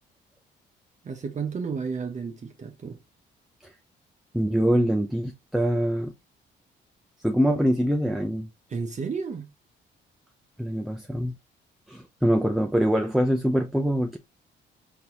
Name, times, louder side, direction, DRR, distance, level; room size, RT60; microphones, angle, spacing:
voice 1, 1.0-3.0 8.7-9.5, right 5 dB, 35° right, 0.7 m, -32 dB
voice 2, 4.3-6.1 7.2-8.5 10.6-11.3 11.9-14.2, equal, ahead, 0.6 m, -24 dB
3.9 x 3.5 x 2.9 m
cardioid pair, 90°, 20 cm